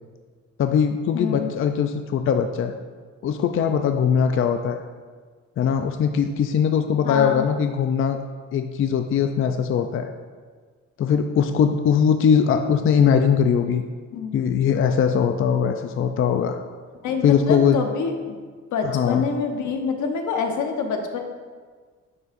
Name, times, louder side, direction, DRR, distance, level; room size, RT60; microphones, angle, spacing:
voice 1, 0.6-2.7 3.2-4.8 5.6-8.2 8.5-10.1 11.0-13.8 14.3-16.6 17.2-17.8 18.8-19.2, left 7 dB, 45° left, 7 dB, 0.4 m, -21 dB
voice 2, 1.1-1.5 7.0-7.4 14.1-14.3 17.0-18.4 18.7-21.2, left 5 dB, 75° left, 4 dB, 0.9 m, -26 dB
9.3 x 5.6 x 2.5 m, 1.5 s
cardioid pair, 90°, 30 cm